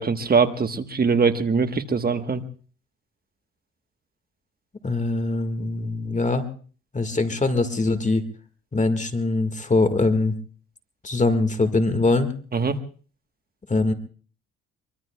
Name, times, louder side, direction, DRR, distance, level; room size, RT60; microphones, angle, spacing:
voice 1, 0.0-2.4 12.5-12.8, right 5 dB, 30° right, 9 dB, 1.3 m, -22 dB
voice 2, 4.8-6.4 6.9-8.2 8.7-10.3 11.0-12.3 13.7-13.9, left 3 dB, 25° left, 8 dB, 1.8 m, -22 dB
24.0 x 23.5 x 2.3 m, 0.41 s
cardioid pair, 90°, 30 cm